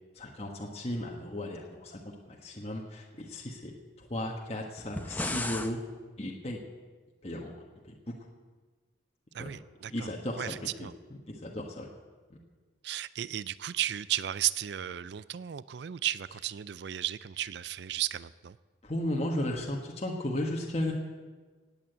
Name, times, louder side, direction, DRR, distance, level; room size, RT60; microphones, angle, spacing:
voice 1, 0.1-5.8 6.2-6.6 7.2-7.5 7.8-7.9 9.4-9.5 9.8-10.9 11.3-11.9 12.3-12.4 18.8-20.9, left 1 dB, 35° left, -1 dB, 1.4 m, -35 dB
sound 1, 4.8-5.7, left 2 dB, 10° left, 0.7 m, -34 dB
voice 2, 9.3-10.1 10.4-10.9 12.8-18.6, right 12 dB, 60° right, 17 dB, 0.4 m, -34 dB
18.0 x 8.8 x 8.0 m, 1.4 s
head